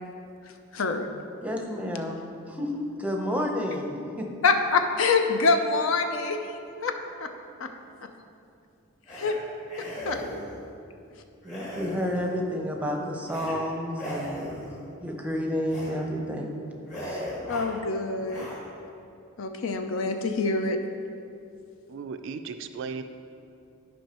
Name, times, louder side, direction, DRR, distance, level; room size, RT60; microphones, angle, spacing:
voice 1, 0.4-1.1 4.4-6.9 7.2-7.3 7.6-7.7 9.1-9.4 9.8-10.2 17.5-18.5 19.4-20.8, left 4 dB, 65° left, 6 dB, 0.5 m, -26 dB
voice 2, 1.4-4.3 11.4-14.5 15.0-16.6 17.0-17.3, equal, 5° right, 1 dB, 0.7 m, -30 dB
sound 1, 9.1-9.3 9.7-10.6 11.4-12.4 13.2-13.5 13.9-14.8 15.6-15.9 16.3-16.5 16.9-17.8 18.2-18.6, equal, 35° left, 1.8 m, -37 dB
voice 3, 21.9-23.0, right 5 dB, 60° right, 9 dB, 0.3 m, -36 dB
10.5 x 5.4 x 3.0 m, 2.6 s
head